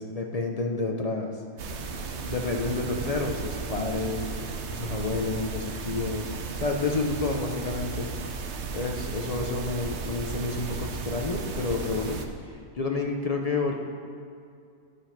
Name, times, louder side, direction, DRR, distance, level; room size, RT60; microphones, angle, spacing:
voice 1, 0.0-1.4 1.9-4.3 4.7-6.3 6.6-8.1 8.7-12.2 12.7-13.7, left 3 dB, 45° left, 2 dB, 0.5 m, -29 dB
sound 1, 1.6-12.2, right 5 dB, 55° right, 0.9 m, -35 dB
12.5 x 5.2 x 5.8 m, 2.4 s
omnidirectional pair, 1.6 m